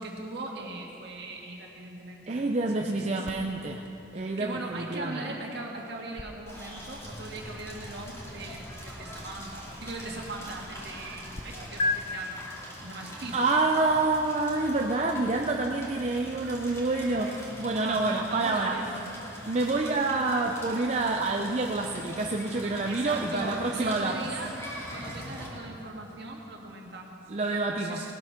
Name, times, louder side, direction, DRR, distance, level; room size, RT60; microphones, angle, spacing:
voice 1, 0.0-2.3 2.8-3.5 4.1-12.4 12.8-13.4 13.7-13.9 17.8-19.0 22.9-24.5 24.9-27.2 27.8-28.1, right 2 dB, 60° right, 0 dB, 1.8 m, -39 dB
voice 2, 2.3-3.9 4.1-5.4 13.3-18.9 19.5-24.3 27.3-28.1, right 3 dB, 35° right, 1 dB, 0.5 m, -28 dB
sound 1, 3.2-11.4 11.8-11.9, left 2 dB, 35° left, 0.6 m, -39 dB
Crackle, 6.5-25.5, equal, 15° left, 2.4 m, -43 dB
19.5 x 7.8 x 5.9 m, 3.0 s
head